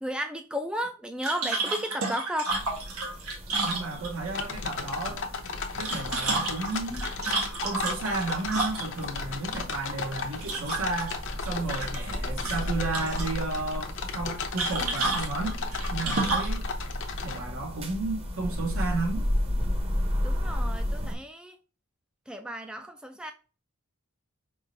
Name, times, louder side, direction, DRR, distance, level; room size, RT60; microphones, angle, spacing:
voice 1, 0.0-2.5 20.2-21.6 22.3-23.3, equal, 5° right, 0.3 m, -34 dB
sound 1, 1.2-4.4 5.6-9.1 10.4-11.1 11.5-12.2 12.4-13.3 14.6-16.6, right 3 dB, 85° right, 1.6 m, -30 dB
sound 2, 2.5-21.1, left 1 dB, 30° right, 0.9 m, -34 dB
voice 2, 3.6-5.3 5.8-7.1 7.6-15.6 15.9-16.7 17.2-19.3, right 3 dB, 70° right, 1.1 m, -33 dB
sound 3, 4.3-17.4, left 5 dB, 60° left, 0.7 m, -36 dB
5.1 x 3.7 x 2.6 m
head